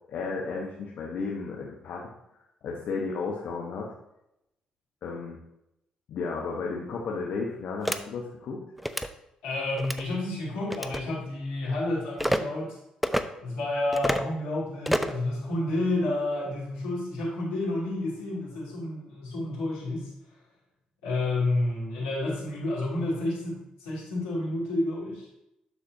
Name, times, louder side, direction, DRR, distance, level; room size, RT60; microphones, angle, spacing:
voice 1, 0.1-2.1 2.6-3.9 5.0-5.4 6.1-8.6, left 4 dB, 60° left, -2 dB, 1.0 m, -33 dB
sound 1, 7.9-8.0 8.8-9.1 9.8-10.0 10.7-11.0 12.2-12.4 13.0-13.2 13.9-14.3 14.9-15.2, equal, 5° right, 0.5 m, -27 dB
voice 2, 9.4-12.8 13.4-20.1 21.0-25.3, left 2 dB, 75° left, -7 dB, 2.7 m, -30 dB
11.5 x 4.3 x 2.7 m, 0.85 s
hypercardioid pair, 45°, 3 cm